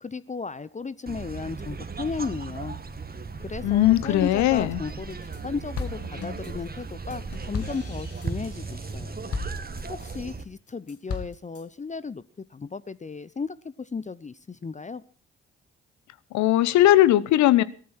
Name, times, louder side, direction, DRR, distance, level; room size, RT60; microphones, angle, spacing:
voice 1, 0.0-2.8 3.4-5.2 5.4-9.2 9.9-15.0, left 4 dB, 25° left, 17 dB, 0.8 m, -35 dB
sound 1, 1.1-10.4, right 4 dB, 30° right, 1.9 m, -36 dB
voice 2, 3.6-4.8 16.3-17.6, left 14 dB, 65° left, 18 dB, 1.0 m, -19 dB
sound 2, 4.9-5.4 5.8-10.3 10.7-11.6, left 5 dB, 50° left, 2.1 m, -37 dB
18.5 x 13.5 x 4.3 m, 0.40 s
hypercardioid pair, 40°, 31 cm